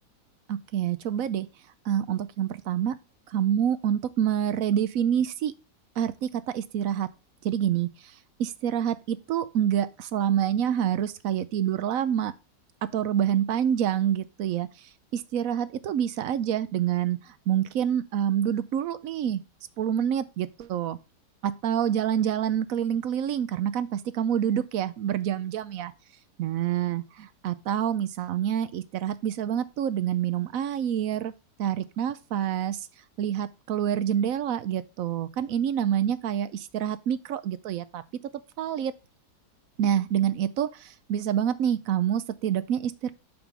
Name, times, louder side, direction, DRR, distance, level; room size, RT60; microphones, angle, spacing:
voice 1, 0.5-1.5 1.8-3.0 3.3-5.5 6.0-7.1 7.4-7.9 8.4-12.3 12.8-14.7 15.1-19.4 19.8-21.0 21.4-25.9 26.4-31.3 31.6-32.9 33.2-38.0 38.6-38.9 39.8-43.1, right 9 dB, 65° right, 0.9 m, -27 dB
7.5 x 3.7 x 5.9 m
omnidirectional pair, 1.9 m